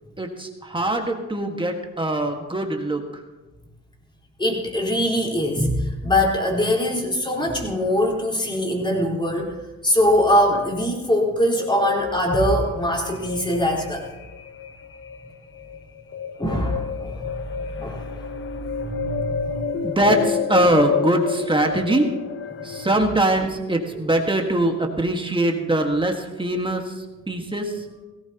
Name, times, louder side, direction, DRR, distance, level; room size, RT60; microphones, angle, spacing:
voice 1, 0.2-3.0 19.8-22.1 22.6-26.9 27.3-27.8, right 1 dB, 15° right, 3 dB, 1.7 m, -22 dB
voice 2, 4.4-9.6 9.8-14.1 16.4-18.3 18.8-19.4 22.6-22.7, equal, 15° left, -1 dB, 4.2 m, -22 dB
sound 1, 11.6-23.0, left 6 dB, 45° left, 0.9 m, -29 dB
18.0 x 16.5 x 3.0 m, 1.2 s
cardioid pair, 90°, 30 cm